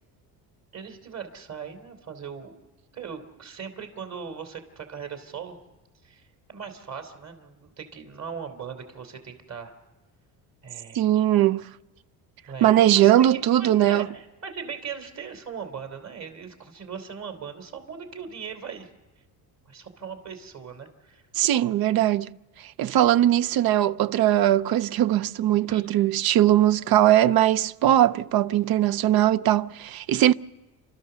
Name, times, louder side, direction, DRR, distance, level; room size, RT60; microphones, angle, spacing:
voice 1, 0.7-2.5 2.9-5.6 6.0-9.7 10.6-11.1 12.4-18.9 19.6-21.2 25.7-25.8, right 6 dB, 40° right, 3.2 m, -39 dB
voice 2, 10.9-11.7 12.6-14.1 21.4-22.3 22.8-30.3, right 12 dB, 60° right, 0.6 m, -20 dB
29.5 x 13.0 x 6.8 m
cardioid pair, 105°, 41 cm